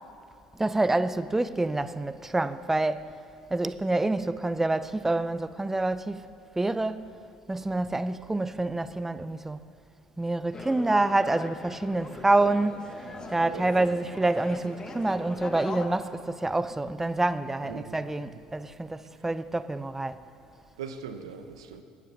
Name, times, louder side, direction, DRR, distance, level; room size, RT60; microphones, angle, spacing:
voice 1, 0.6-3.1 3.5-6.3 6.6-7.1 7.5-9.6 10.2-13.0 13.3-20.2, right 2 dB, 10° right, 0.5 m, -27 dB
sound 1, 10.5-15.9, left 3 dB, 25° left, 1.2 m, -41 dB
voice 2, 13.4-14.0 17.6-18.3 20.8-21.8, right 6 dB, 90° right, 0.8 m, -41 dB
13.0 x 9.0 x 6.9 m
hypercardioid pair, 70°, 3 cm